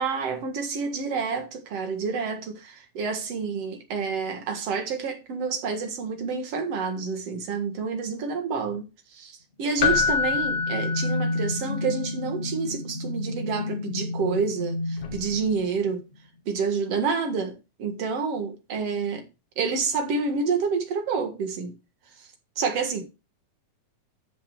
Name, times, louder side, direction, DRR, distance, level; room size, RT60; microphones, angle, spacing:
voice 1, 0.0-8.9 9.1-9.3 9.6-16.0 16.5-19.2 19.6-21.7 22.6-23.0, right 5 dB, 55° right, 2.4 m, -28 dB
sound 1, 9.7-16.2, left 2 dB, 35° left, 1.0 m, -31 dB
Keyboard (musical), 9.8-11.8 15.0-15.2, left 6 dB, 50° left, 2.0 m, -26 dB
13.0 x 7.1 x 3.0 m
omnidirectional pair, 3.8 m